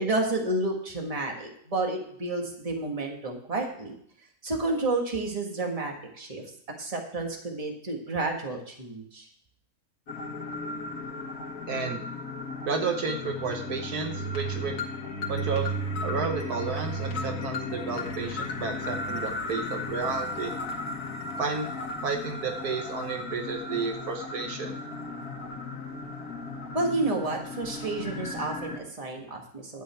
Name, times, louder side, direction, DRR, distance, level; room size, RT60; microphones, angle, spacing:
voice 1, 0.0-4.0 4.4-6.4 6.8-9.3 26.7-29.8, right 2 dB, 25° right, 2 dB, 1.7 m, -30 dB
sound 1, 10.1-28.8, left 1 dB, 70° left, 2.0 m, -35 dB
voice 2, 11.7-12.0 12.7-14.7 15.3-15.7 16.0-20.5 21.4-21.7 22.0-24.7, right 4 dB, 70° right, 4 dB, 1.6 m, -32 dB
11.5 x 8.4 x 4.4 m, 0.65 s
omnidirectional pair, 1.7 m